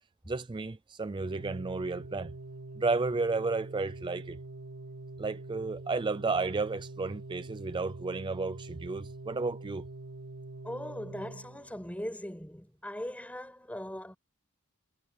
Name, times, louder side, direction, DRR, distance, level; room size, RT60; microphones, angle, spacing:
voice 1, 0.3-2.3 2.8-4.4 5.2-9.8, right 3 dB, 20° right, 0.4 m, -32 dB
Organ, 1.1-12.0, right 2 dB, 80° right, 3.7 m, -45 dB
voice 2, 10.6-14.2, left 1 dB, 5° left, 6.4 m, -40 dB
head